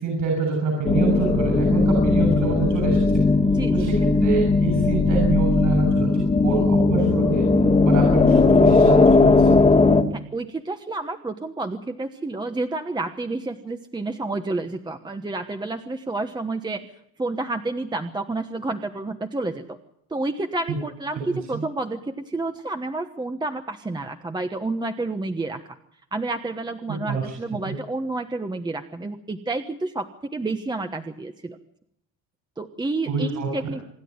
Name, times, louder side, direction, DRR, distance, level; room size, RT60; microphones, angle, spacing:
voice 1, 0.0-3.2 3.7-7.5 7.8-9.3 20.7-20.8 21.3-21.6 26.9-27.8 33.1-33.5, right 4 dB, 60° right, 2 dB, 7.2 m, -26 dB
sound 1, 0.8-10.0, left 3 dB, 20° left, 1.9 m, -18 dB
voice 2, 3.5-3.9 10.1-16.8 17.2-19.8 20.1-25.8 26.1-31.6 32.6-33.8, right 2 dB, 10° right, 6 dB, 1.1 m, -30 dB
26.5 x 11.0 x 9.6 m, 0.75 s
cardioid pair, 120°, 35 cm